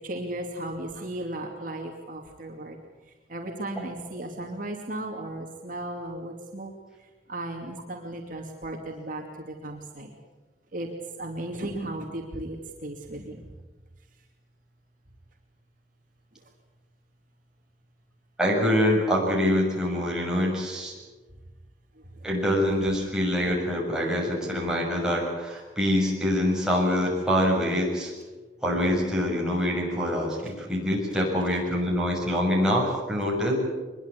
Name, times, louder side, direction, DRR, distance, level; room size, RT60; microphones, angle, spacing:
voice 1, 0.0-2.8 3.3-6.7 7.3-10.1 10.7-10.9 11.2-12.6 12.8-13.4, right 1 dB, 45° right, 1 dB, 2.7 m, -35 dB
voice 2, 18.4-20.9 22.2-28.1 28.6-33.6, equal, 5° right, -3 dB, 7.0 m, -25 dB
23.5 x 22.0 x 8.4 m, 1.3 s
head